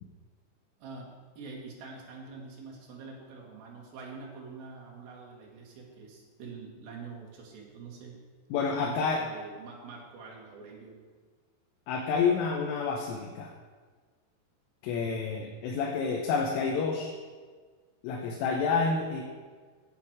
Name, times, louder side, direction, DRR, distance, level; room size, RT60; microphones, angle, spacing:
voice 1, 0.8-8.2 8.8-11.0 15.0-15.3, right 4 dB, 60° right, -2 dB, 3.2 m, -45 dB
voice 2, 8.5-9.2 11.9-13.5 14.8-17.1 18.0-19.2, left 5 dB, 85° left, 1 dB, 3.5 m, -29 dB
12.0 x 8.2 x 4.7 m, 1.5 s
omnidirectional pair, 5.6 m